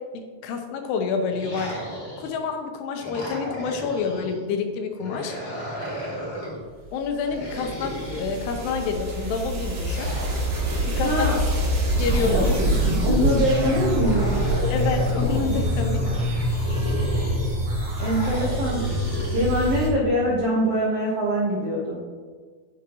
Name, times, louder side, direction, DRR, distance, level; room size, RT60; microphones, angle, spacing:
voice 1, 0.1-1.8 2.2-5.4 6.9-10.1 10.9-11.4 12.0-12.6 14.7-16.1, left 5 dB, 85° left, 5 dB, 2.9 m, -28 dB
sound 1, 1.3-2.5 3.0-4.4 5.0-6.6 7.2-9.0 9.9-11.2 11.9-13.3 14.0-15.3 16.0-17.5 18.0-19.4, equal, 20° left, 1.2 m, -35 dB
sound 2, 7.0-19.9, equal, 55° right, 1.3 m, -25 dB
voice 2, 11.0-11.4 12.3-12.4 13.0-14.5 18.0-18.9 19.3-22.0, equal, 85° right, -4 dB, 1.3 m, -23 dB
10.0 x 7.2 x 3.0 m, 1.5 s
omnidirectional pair, 4.6 m